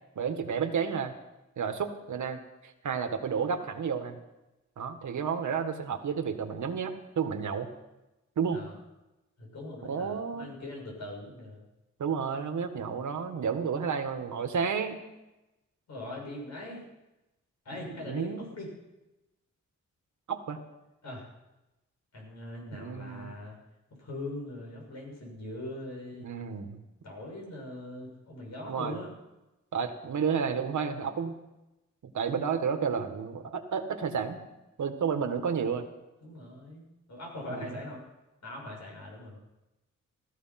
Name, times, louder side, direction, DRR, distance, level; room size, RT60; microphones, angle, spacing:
voice 1, 0.2-1.1 1.6-4.2 4.8-7.7 8.4-8.6 9.8-10.5 12.0-15.0 17.9-18.5 20.3-20.6 22.7-23.3 26.2-26.8 28.7-29.0 29.7-31.4 32.0-34.4 34.8-35.9 37.5-37.8, right 6 dB, 80° right, 6 dB, 1.7 m, -31 dB
voice 2, 9.4-11.6 15.9-16.8 17.6-18.7 21.0-21.2 22.1-23.6 24.0-26.2 27.0-29.1 36.2-38.0 38.4-39.4, left 1 dB, 65° left, 0 dB, 6.8 m, -41 dB
16.5 x 14.0 x 5.9 m, 0.99 s
wide cardioid pair, 165°, 29 cm